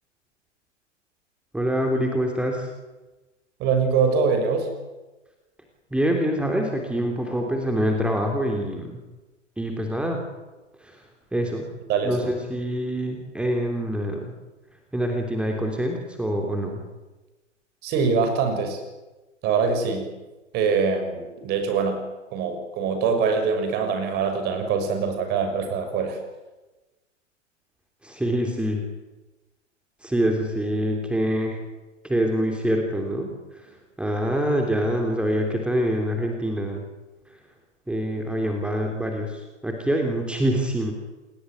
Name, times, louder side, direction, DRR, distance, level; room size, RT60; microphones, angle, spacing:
voice 1, 1.5-2.7 5.9-9.0 9.6-10.2 10.8-11.0 11.3-11.7 12.0-14.3 14.9-16.8 28.0-28.9 30.0-31.6 32.0-33.7 34.0-36.8 37.9-40.9, equal, 5° right, 2 dB, 3.3 m, -25 dB
voice 2, 3.6-4.7 11.9-12.3 17.8-18.8 19.4-20.1 20.5-22.0 22.3-26.2, right 5 dB, 25° right, 7 dB, 6.5 m, -23 dB
28.0 x 21.0 x 9.7 m, 1.1 s
figure-of-eight pair, 110°, 37 cm